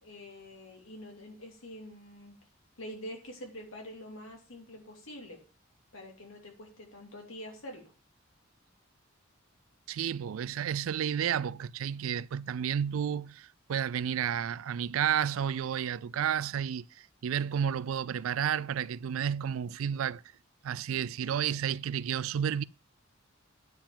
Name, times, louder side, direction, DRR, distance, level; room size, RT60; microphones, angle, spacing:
voice 1, 0.0-2.4 2.8-5.4 5.9-7.9, equal, 70° left, 2.9 m, -46 dB
voice 2, 9.9-20.2 20.6-22.6, right 8 dB, 75° right, 0.4 m, -31 dB
9.6 x 4.6 x 7.1 m
head